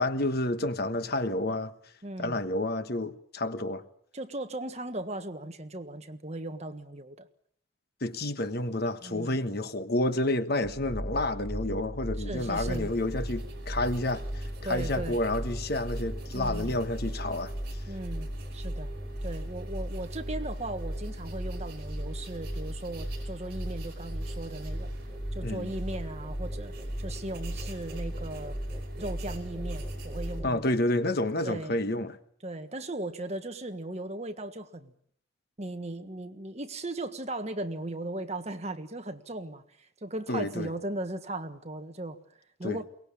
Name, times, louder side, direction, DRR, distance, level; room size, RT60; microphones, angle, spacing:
voice 1, 0.0-1.7 2.2-3.8 8.0-17.5 25.4-25.7 30.4-32.2 40.3-40.7 42.6-42.8, left 1 dB, 50° left, 1.3 m, -29 dB
voice 2, 2.0-2.4 4.1-7.3 9.0-9.4 12.2-12.9 14.6-15.2 16.3-16.8 17.9-18.9 19.2-24.9 25.3-26.7 27.0-28.6 29.0-30.8 31.4-31.8 32.4-34.9 35.6-42.2 42.6-42.8, right 1 dB, 35° right, 1.6 m, -37 dB
sound 1, 10.6-30.5, equal, 5° right, 4.4 m, -36 dB
sound 2, 12.3-30.4, right 3 dB, 50° right, 5.5 m, -49 dB
23.0 x 19.5 x 8.5 m
head